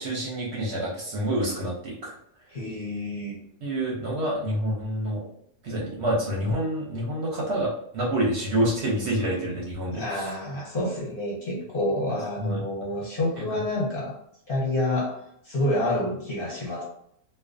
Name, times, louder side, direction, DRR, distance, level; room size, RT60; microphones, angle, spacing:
voice 1, 0.0-2.2 3.6-5.2 5.6-10.3 12.4-12.6, right 1 dB, 60° right, -4 dB, 0.8 m, -27 dB
voice 2, 2.5-3.4 9.9-14.2 14.5-15.2 15.4-16.8, left 1 dB, 50° left, -5 dB, 0.8 m, -28 dB
2.4 x 2.1 x 2.4 m, 0.71 s
omnidirectional pair, 1.5 m